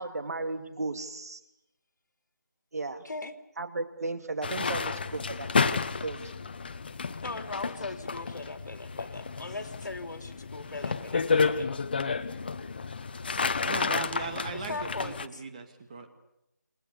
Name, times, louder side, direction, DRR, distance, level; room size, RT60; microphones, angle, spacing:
voice 1, 0.0-1.4 2.7-3.0 3.6-6.5, right 3 dB, 55° right, 9 dB, 2.9 m, -35 dB
voice 2, 3.0-3.4 7.2-11.8 14.3-15.4, left 3 dB, 75° left, 7 dB, 3.1 m, -39 dB
sound 1, 4.4-15.3, left 5 dB, 30° left, 0.9 m, -31 dB
voice 3, 13.6-16.1, right 4 dB, 25° right, 5 dB, 2.5 m, -38 dB
28.5 x 21.0 x 6.9 m, 0.84 s
figure-of-eight pair, 175°, 10 cm